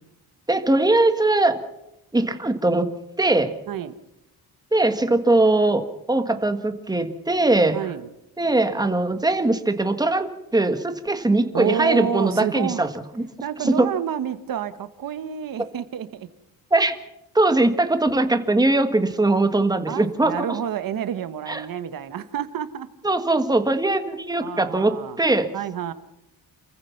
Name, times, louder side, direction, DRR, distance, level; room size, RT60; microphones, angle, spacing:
voice 1, 0.5-1.6 2.1-2.9 3.2-3.6 4.7-5.8 6.1-7.8 8.4-12.9 13.2-13.3 13.6-13.9 16.7-16.9 17.3-20.6 21.5-21.7 23.0-25.5, right 2 dB, 10° right, 8 dB, 1.6 m, -21 dB
voice 2, 7.7-8.1 11.5-12.9 13.4-16.3 19.9-22.9 24.4-25.2 25.5-25.9, right 9 dB, 65° right, 11 dB, 1.5 m, -29 dB
28.5 x 15.0 x 5.9 m, 0.89 s
cardioid pair, 150°, 36 cm